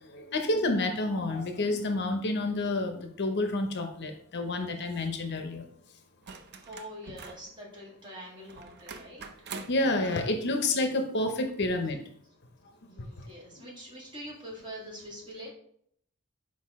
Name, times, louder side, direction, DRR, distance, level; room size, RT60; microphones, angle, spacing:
voice 1, 0.1-5.7 9.7-12.0 13.5-13.6, left 2 dB, 55° left, 6 dB, 0.8 m, -29 dB
sound 1, 6.2-7.5 8.5-9.9 11.5-11.6, right 4 dB, 50° right, 0.6 m, -44 dB
voice 2, 6.5-9.3 12.8-15.5, equal, 25° right, -4 dB, 2.1 m, -44 dB
6.4 x 4.7 x 3.6 m, 0.66 s
head